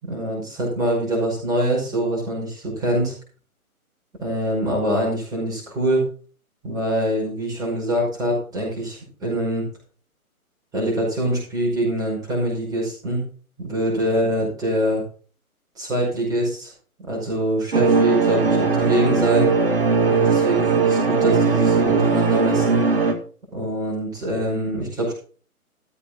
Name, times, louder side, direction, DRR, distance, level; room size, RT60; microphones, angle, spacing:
voice 1, 0.0-3.1 4.2-6.0 6.6-9.6 10.7-13.2 13.6-15.0 15.8-16.7 17.1-19.5 20.1-22.8 23.5-25.1, right 1 dB, 10° right, -4 dB, 5.5 m, -24 dB
sound 1, 17.7-23.1, right 4 dB, 40° right, 1.9 m, -19 dB
14.0 x 8.6 x 4.0 m, 0.41 s
figure-of-eight pair, 145°, 44 cm